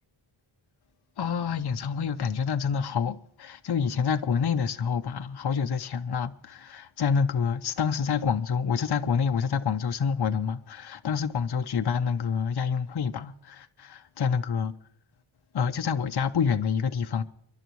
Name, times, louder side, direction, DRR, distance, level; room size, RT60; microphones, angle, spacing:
voice 1, 1.2-14.7 15.5-17.2, left 6 dB, 55° left, 0.8 m, -27 dB
29.5 x 11.5 x 3.1 m
wide cardioid pair, 105°, 48 cm